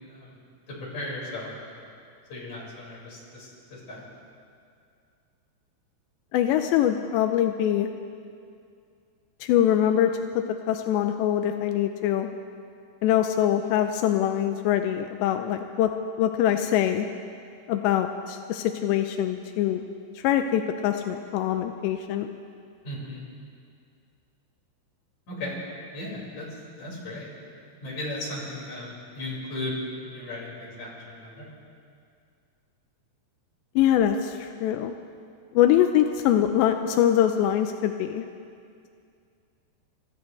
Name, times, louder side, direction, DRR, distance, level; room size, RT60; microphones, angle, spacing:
voice 1, 0.1-0.4 0.7-1.8 2.3-4.0 22.8-23.2 25.3-25.6 25.9-26.5 26.8-27.3 27.8-29.8 30.0-31.5, left 1 dB, 45° left, -4 dB, 6.8 m, -36 dB
voice 2, 6.3-7.9 9.4-12.3 13.0-15.9 16.2-17.1 17.7-19.8 20.2-22.3 33.8-34.9 35.5-38.3, left 10 dB, 90° left, 6 dB, 3.0 m, -23 dB
29.5 x 26.0 x 3.4 m, 2.3 s
omnidirectional pair, 5.0 m